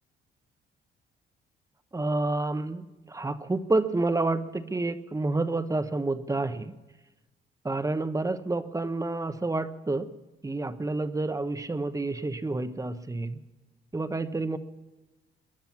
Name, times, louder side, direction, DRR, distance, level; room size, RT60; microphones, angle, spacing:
voice 1, 1.9-6.7 7.6-10.1 10.4-13.4 13.9-14.6, right 2 dB, 15° right, 11 dB, 1.0 m, -29 dB
22.5 x 10.5 x 6.0 m, 1.1 s
cardioid pair, 90°, 20 cm